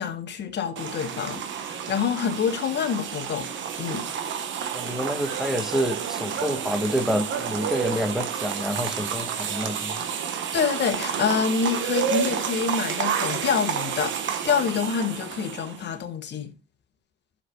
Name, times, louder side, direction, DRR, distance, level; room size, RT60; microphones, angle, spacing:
voice 1, 0.0-3.5 3.8-4.1 10.5-16.5, left 6 dB, 60° left, 1.6 m, -27 dB
sound 1, 0.8-15.9, right 7 dB, 70° right, 1.2 m, -30 dB
voice 2, 4.7-10.0, equal, ahead, 1.4 m, -28 dB
14.5 x 6.8 x 2.2 m
cardioid pair, 90°, 20 cm